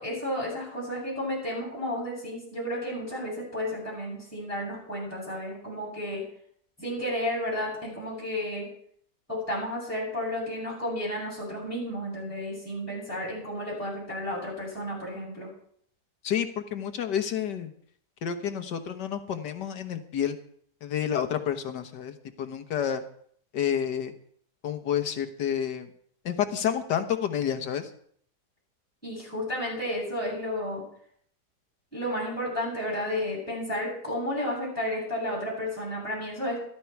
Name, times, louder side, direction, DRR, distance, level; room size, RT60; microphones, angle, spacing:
voice 1, 0.0-6.2 6.8-8.7 9.3-15.5 29.0-30.8 31.9-36.6, left 1 dB, 10° left, -5 dB, 8.0 m, -32 dB
voice 2, 16.2-17.7 18.2-20.4 20.8-23.0 23.5-24.1 24.6-25.9 26.3-27.9, left 9 dB, 85° left, 8 dB, 1.8 m, -29 dB
14.0 x 13.0 x 4.6 m, 0.62 s
omnidirectional pair, 1.8 m